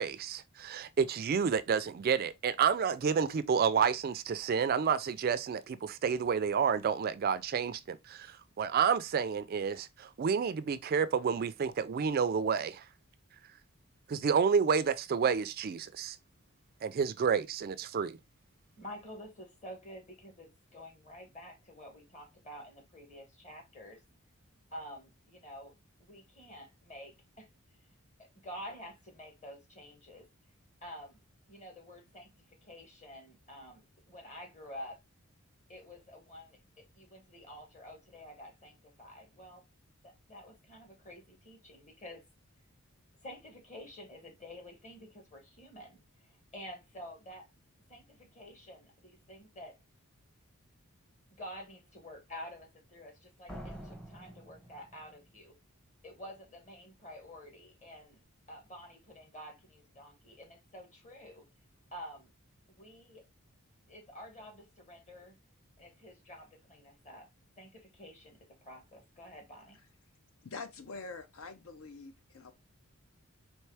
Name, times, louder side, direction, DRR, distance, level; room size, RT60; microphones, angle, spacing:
voice 1, 0.0-12.8 14.1-16.2 16.8-18.2, right 6 dB, 45° right, 0.3 m, -30 dB
voice 2, 18.8-24.0 24.7-25.7 26.0-27.5 28.2-30.3 30.8-31.2 31.5-35.0 35.7-39.6 40.0-42.2 43.2-47.5 47.9-49.8 51.4-55.5 56.0-58.2 58.5-61.4 61.9-62.3 62.7-63.2 63.9-65.3 65.8-67.3 67.6-69.8, equal, 35° left, 1.6 m, -49 dB
Slam, 53.5-55.4, equal, 5° left, 0.7 m, -47 dB
voice 3, 70.4-72.5, left 4 dB, 70° left, 0.6 m, -45 dB
4.4 x 3.1 x 3.3 m
head